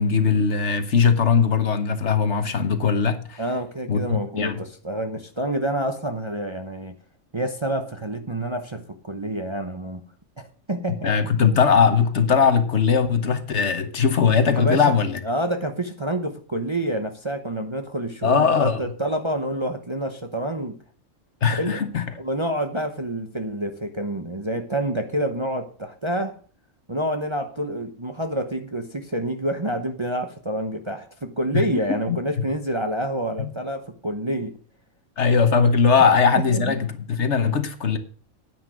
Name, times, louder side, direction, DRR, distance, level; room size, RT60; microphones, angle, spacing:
voice 1, 0.0-3.4 3.9-4.6 11.0-15.2 18.2-18.8 21.4-22.0 31.5-32.5 35.2-38.0, left 6 dB, 55° left, 1.3 m, -20 dB
voice 2, 3.4-7.0 7.3-10.0 10.4-11.1 13.8-13.9 14.5-15.0 15.2-20.8 21.6-21.8 22.2-26.4 26.9-34.6 36.0-36.1 36.5-36.8, right 1 dB, 25° right, 0.9 m, -28 dB
10.0 x 9.2 x 6.1 m
omnidirectional pair, 1.4 m